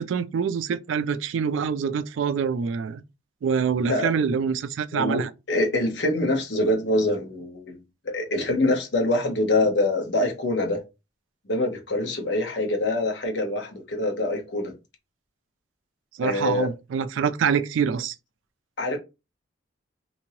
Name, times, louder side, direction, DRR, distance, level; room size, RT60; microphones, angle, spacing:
voice 1, 0.0-3.0 3.4-5.3 16.2-18.1, right 6 dB, 85° right, 0.3 m, -25 dB
voice 2, 5.5-7.8 8.0-10.8 11.5-14.7 16.2-16.7 18.8-19.0, left 2 dB, 70° left, 0.9 m, -24 dB
3.0 x 2.6 x 2.7 m
head